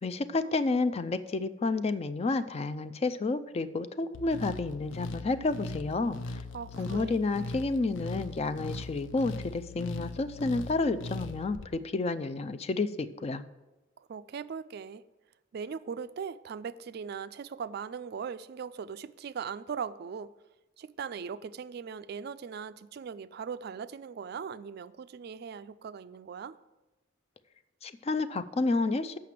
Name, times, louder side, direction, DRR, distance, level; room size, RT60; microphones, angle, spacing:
voice 1, 0.0-6.2 6.8-13.4 27.8-29.2, left 3 dB, 35° left, 0.4 m, -30 dB
sound 1, 4.1-11.7, left 2 dB, 80° left, 0.5 m, -40 dB
voice 2, 6.5-7.2 14.0-15.0 15.5-20.3 20.8-26.5, right 6 dB, 55° right, 0.3 m, -39 dB
7.6 x 5.8 x 7.4 m
head